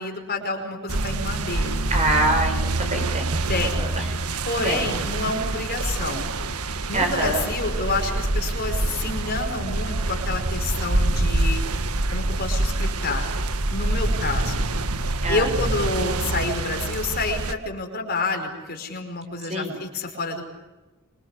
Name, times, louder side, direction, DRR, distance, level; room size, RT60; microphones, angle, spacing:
voice 1, 0.0-1.8 3.5-3.9 4.5-6.3 6.9-11.6 12.1-13.3 13.7-14.7 15.3-20.4, left 3 dB, 45° left, 4 dB, 5.2 m, -28 dB
sound 1, 0.9-17.5, right 2 dB, 90° right, 1.6 m, -26 dB
voice 2, 1.9-3.3 3.7-4.0 4.6-4.9 6.9-7.5 15.2-15.5 19.5-19.8, right 2 dB, 30° right, 5 dB, 6.0 m, -25 dB
26.0 x 25.5 x 8.5 m, 1.1 s
head